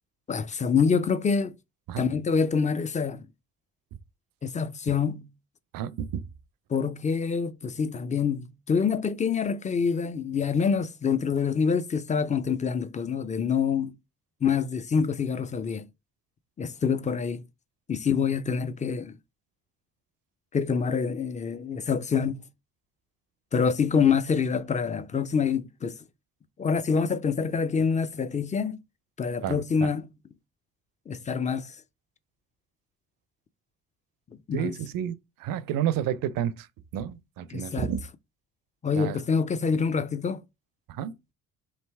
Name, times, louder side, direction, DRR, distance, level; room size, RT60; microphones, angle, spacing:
voice 1, 0.3-1.5 2.0-3.3 4.4-5.3 6.7-13.9 14.4-15.8 16.6-17.4 17.9-19.2 20.5-22.4 23.5-25.9 26.6-28.8 29.2-30.1 31.1-31.7 34.5-34.7 37.5-37.9 38.8-40.4, left 6 dB, 20° left, 0.4 m, -26 dB
voice 2, 5.7-6.2 29.4-29.9 34.5-35.1 35.4-36.7 36.9-38.0 39.0-39.2 40.9-41.1, right 10 dB, 65° right, 0.5 m, -30 dB
3.2 x 2.8 x 4.4 m
hypercardioid pair, 55°, 37 cm